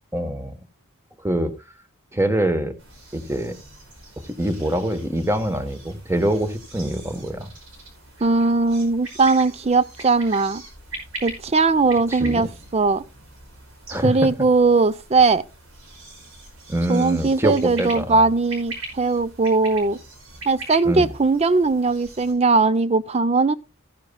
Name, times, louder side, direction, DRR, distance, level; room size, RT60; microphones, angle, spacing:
voice 1, 0.1-0.6 1.2-1.5 2.1-2.7 3.1-3.6 4.2-7.5 12.1-12.5 13.9-14.3 16.7-18.3 20.8-21.1, right 1 dB, 10° right, 1.0 m, -24 dB
sound 1, 2.8-22.3, right 2 dB, 80° right, 5.3 m, -41 dB
voice 2, 8.2-10.6 11.2-13.0 14.0-15.4 16.9-20.0 20.5-23.5, right 3 dB, 30° right, 0.5 m, -19 dB
15.0 x 10.5 x 2.2 m
head